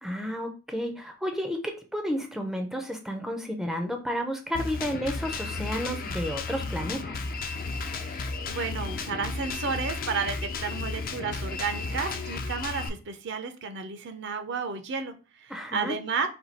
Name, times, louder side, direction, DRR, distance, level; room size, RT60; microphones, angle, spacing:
voice 1, 0.0-7.2 15.5-16.0, equal, ahead, 4 dB, 0.5 m, -32 dB
Drum kit, 4.5-12.9, left 3 dB, 45° left, 0.5 m, -33 dB
voice 2, 8.1-16.3, right 5 dB, 60° right, 8 dB, 0.6 m, -32 dB
4.4 x 2.3 x 4.0 m, 0.33 s
head